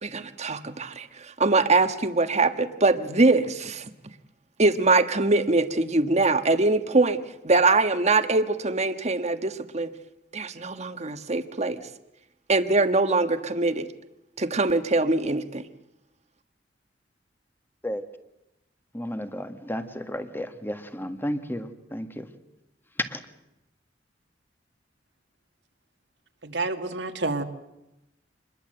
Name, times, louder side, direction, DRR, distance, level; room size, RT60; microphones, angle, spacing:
voice 1, 0.0-3.9 4.6-9.9 10.3-11.8 12.5-13.9 14.4-15.6, right 3 dB, 40° right, 9 dB, 1.4 m, -23 dB
voice 2, 18.9-22.3 23.1-23.2, equal, 10° left, 8 dB, 1.7 m, -33 dB
voice 3, 26.4-27.4, right 3 dB, 75° right, 6 dB, 2.1 m, -28 dB
26.5 x 21.5 x 7.8 m, 0.90 s
head